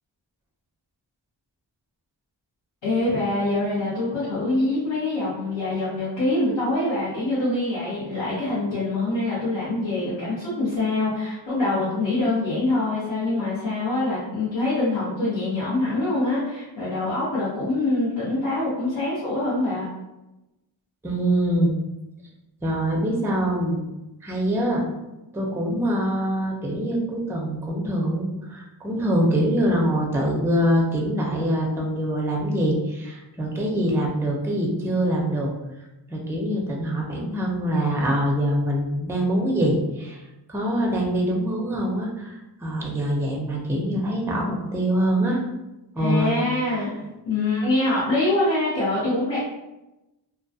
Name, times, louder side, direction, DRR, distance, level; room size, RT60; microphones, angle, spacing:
voice 1, 2.8-19.9 46.0-49.4, left 2 dB, 80° left, -11 dB, 1.0 m, -24 dB
voice 2, 21.0-21.7 22.6-23.8 24.2-24.8 25.3-35.5 36.1-40.2 40.5-45.4 46.0-46.3, right 1 dB, 5° right, -1 dB, 0.4 m, -24 dB
2.2 x 2.2 x 2.6 m, 0.98 s
wide cardioid pair, 65°, 45 cm